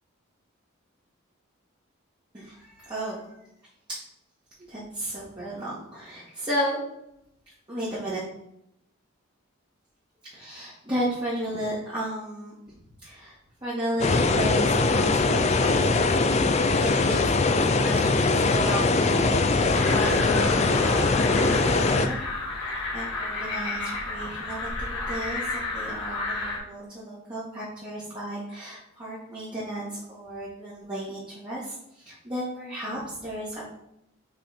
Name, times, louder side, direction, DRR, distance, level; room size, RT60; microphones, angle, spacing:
voice 1, 2.3-3.3 3.9-4.0 4.7-6.8 7.7-8.2 10.4-12.8 13.0-22.2 22.9-33.6, equal, 20° right, -10 dB, 1.9 m, -34 dB
sound 1, 14.0-22.1, left 3 dB, 30° left, 0.4 m, -22 dB
sound 2, 19.7-26.6, left 3 dB, 65° left, 2.6 m, -32 dB
5.6 x 5.3 x 4.2 m, 0.79 s
head